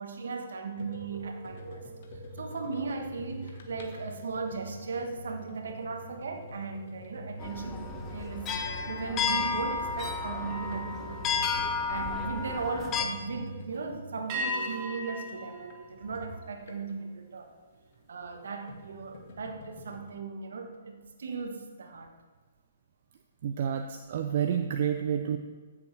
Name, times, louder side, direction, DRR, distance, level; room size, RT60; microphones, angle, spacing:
voice 1, 0.0-1.9 2.4-11.5 11.9-17.5 18.1-22.1, right 4 dB, 75° right, 5 dB, 1.4 m, -37 dB
sound 1, 0.8-17.1 18.2-20.1, equal, 55° left, 1.5 m, -46 dB
sound 2, 1.1-6.7 7.1-7.4 10.4-12.6 14.3-16.9, equal, 35° right, 1.4 m, -42 dB
sound 3, 7.4-13.0, left 5 dB, 25° left, 1.0 m, -32 dB
voice 2, 23.4-25.4, right 8 dB, 55° right, 6 dB, 0.6 m, -29 dB
15.0 x 7.1 x 3.4 m, 1.4 s
hypercardioid pair, 130°, 0 cm